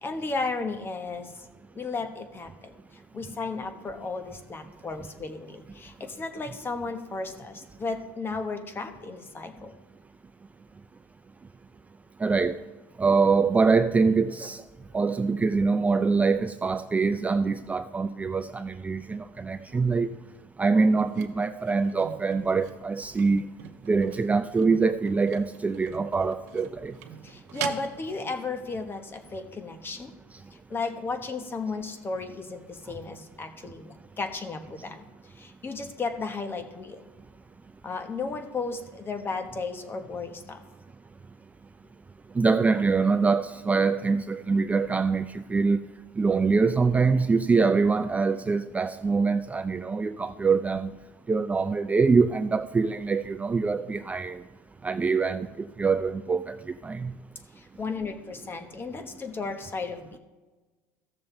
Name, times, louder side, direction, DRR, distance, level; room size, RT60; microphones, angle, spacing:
voice 1, 0.0-1.5 1.7-2.7 3.1-9.7 27.2-30.1 30.5-37.0 37.8-40.6 57.5-60.2, left 3 dB, 25° left, 1.2 m, -34 dB
voice 2, 12.2-12.6 13.0-14.6 14.9-20.1 20.6-23.4 23.9-26.9 42.4-45.8 46.2-50.9 51.3-54.4 54.8-57.1, right 4 dB, 15° right, 0.3 m, -24 dB
sound 1, 21.1-28.4 28.9-29.0, right 9 dB, 85° right, 0.8 m, -43 dB
14.5 x 6.7 x 3.3 m
supercardioid pair, 95°, 8 cm